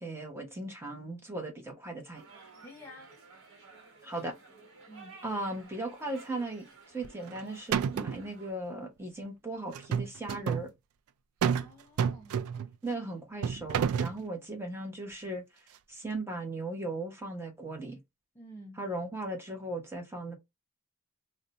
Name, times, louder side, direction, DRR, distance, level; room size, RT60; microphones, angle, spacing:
voice 1, 0.0-2.2 4.0-4.3 5.2-10.7 12.8-15.4 15.9-18.0 18.8-20.4, right 2 dB, 10° right, 0.8 m, -37 dB
sound 1, 2.1-8.5, right 3 dB, 55° right, 1.1 m, -54 dB
voice 2, 2.6-3.1 4.9-5.2 11.6-12.5 18.3-18.8, equal, 10° left, 0.4 m, -50 dB
sound 2, 7.0-7.4 7.7-8.3 9.7-10.7 11.4-11.7 12.0-12.7 13.4-14.2, right 7 dB, 75° right, 0.3 m, -29 dB
2.5 x 2.1 x 3.9 m
head